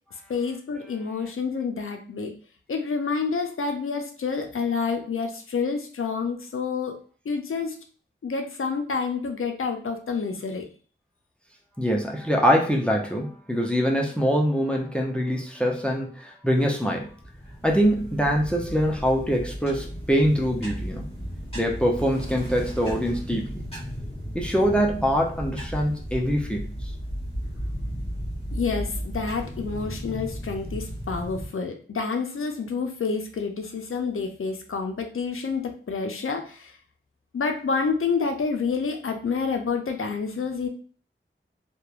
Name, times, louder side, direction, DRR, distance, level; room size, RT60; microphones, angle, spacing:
voice 1, 0.3-2.3 2.7-7.8 8.2-10.6 28.5-36.7 37.3-40.7, left 5 dB, 85° left, 4 dB, 0.4 m, -28 dB
voice 2, 11.8-17.1 17.6-21.1 21.5-23.5 24.3-26.7, equal, 5° left, 1 dB, 0.5 m, -24 dB
sound 1, 17.0-31.5, equal, 30° left, 1.3 m, -35 dB
2.9 x 2.2 x 2.4 m, 0.42 s
wide cardioid pair, 50°, 21 cm